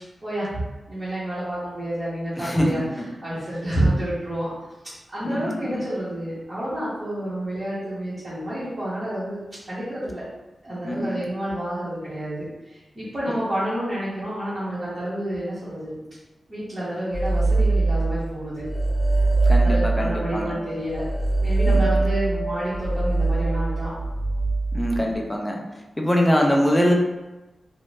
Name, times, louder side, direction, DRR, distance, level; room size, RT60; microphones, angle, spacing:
voice 1, 0.2-2.8 3.2-4.5 5.1-9.4 9.7-10.2 10.6-16.0 16.5-18.6 19.6-21.0 21.4-23.9, right 1 dB, 30° right, -11 dB, 0.8 m, -29 dB
voice 2, 2.4-3.1 5.2-5.9 10.8-11.2 13.3-13.4 19.4-20.5 21.6-22.0 24.7-25.6 26.0-26.9, equal, 10° left, 0 dB, 0.3 m, -23 dB
sound 1, 17.1-18.3 18.6-25.1, right 2 dB, 40° left, 0.7 m, -22 dB
2.5 x 2.1 x 3.1 m, 1.1 s
wide cardioid pair, 170°, 0 cm